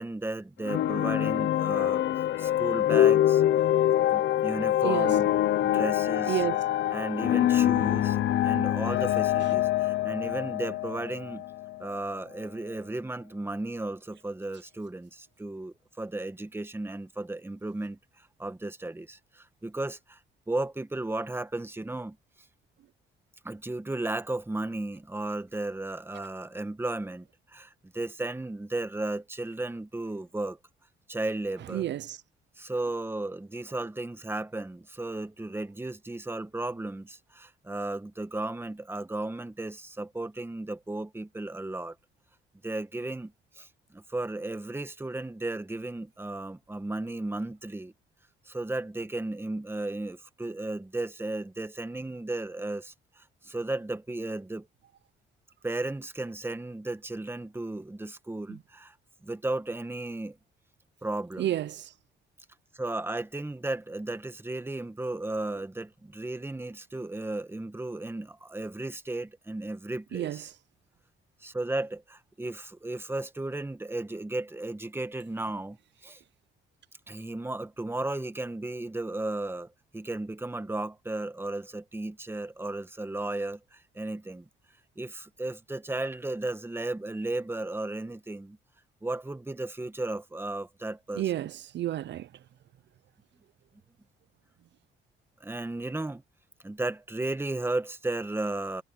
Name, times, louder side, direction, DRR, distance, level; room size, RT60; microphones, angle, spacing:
voice 1, 0.0-2.0 2.4-3.4 4.1-5.3 5.6-6.5 6.9-11.4 11.8-20.2 20.5-22.2 23.4-30.6 31.1-31.9 32.6-41.9 42.6-47.9 48.4-54.7 55.6-58.9 59.2-60.4 61.0-61.6 62.7-70.5 71.4-75.8 76.0-76.2 77.1-84.5 85.0-88.6 89.0-91.5 95.4-96.2 96.6-98.8, right 2 dB, 10° right, 1.5 m, -34 dB
sound 1, 0.6-11.9, left 12 dB, 70° left, 0.9 m, -25 dB
voice 2, 6.3-6.6 26.1-26.3 31.7-32.2 58.5-58.6 61.4-61.9 70.1-70.5 91.2-92.3, right 13 dB, 65° right, 0.6 m, -31 dB
cardioid pair, 90°, 20 cm